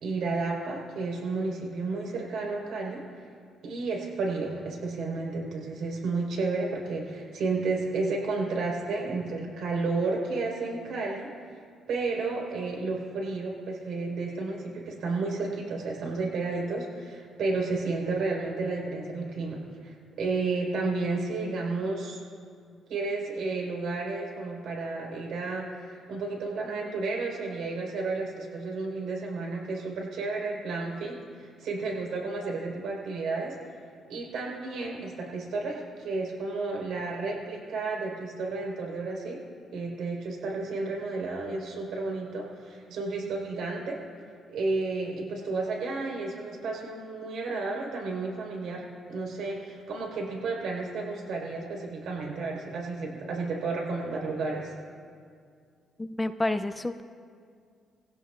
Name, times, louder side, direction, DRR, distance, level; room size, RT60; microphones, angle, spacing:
voice 1, 0.0-3.0 3.6-11.3 11.9-22.2 22.9-33.6 34.1-39.4 39.7-44.0 44.5-54.7, right 3 dB, 75° right, -1 dB, 4.4 m, -32 dB
voice 2, 56.0-57.0, left 2 dB, 15° left, 10 dB, 0.5 m, -29 dB
21.0 x 16.0 x 2.5 m, 2.2 s
cardioid pair, 90°, 0 cm